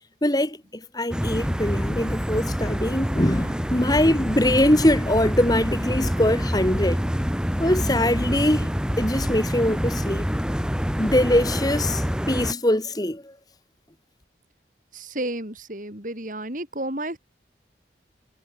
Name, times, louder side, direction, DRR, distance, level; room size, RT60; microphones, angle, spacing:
voice 1, 0.2-0.6 0.9-7.0 7.6-8.7 9.0-10.3 11.0-13.3, left 1 dB, 20° left, 2.3 m, -22 dB
sound 1, 1.1-12.5, equal, 5° right, 2.4 m, -26 dB
voice 2, 14.9-17.2, right 1 dB, 45° right, 5.1 m, -31 dB
head